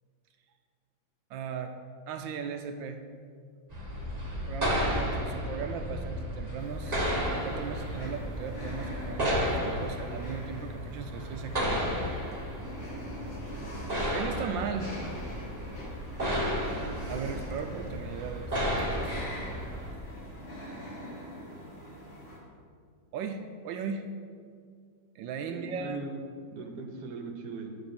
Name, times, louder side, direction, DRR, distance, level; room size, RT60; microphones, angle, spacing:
voice 1, 1.3-1.7 2.1-3.0 4.5-7.0 7.3-12.0 14.1-14.9 17.1-18.6 23.1-24.0 25.1-26.0, right 6 dB, 80° right, 6 dB, 1.3 m, -37 dB
sound 1, 3.7-19.9, equal, 25° right, 1.3 m, -33 dB
sound 2, 6.6-22.4, equal, 40° left, 2.3 m, -44 dB
voice 2, 25.4-26.2 26.5-27.8, right 4 dB, 60° right, 4 dB, 1.4 m, -39 dB
10.0 x 4.1 x 6.9 m, 2.1 s
omnidirectional pair, 2.1 m